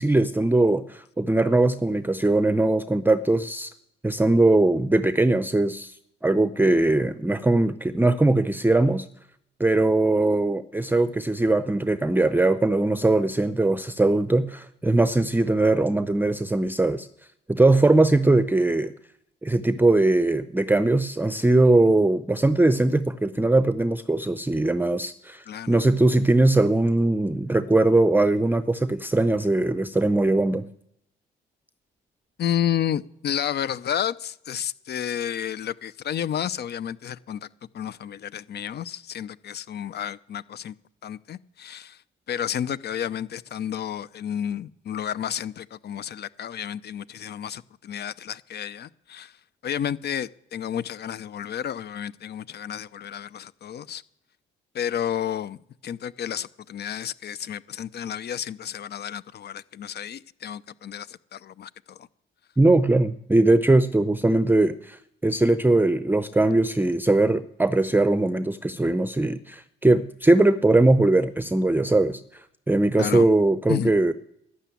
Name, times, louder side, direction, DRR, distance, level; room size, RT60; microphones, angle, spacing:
voice 1, 0.0-3.7 4.0-5.9 6.2-9.1 9.6-17.1 17.5-18.9 19.4-30.7 62.6-74.1, right 2 dB, 10° right, 13 dB, 0.6 m, -21 dB
voice 2, 25.5-25.8 32.4-37.5 37.7-40.7 41.0-42.0 42.3-49.4 49.6-54.0 54.7-55.6 55.8-62.1 73.0-73.3 73.7-73.9, left 9 dB, 55° left, 18 dB, 0.7 m, -31 dB
12.0 x 11.5 x 8.4 m, 0.76 s
cardioid pair, 90°, 20 cm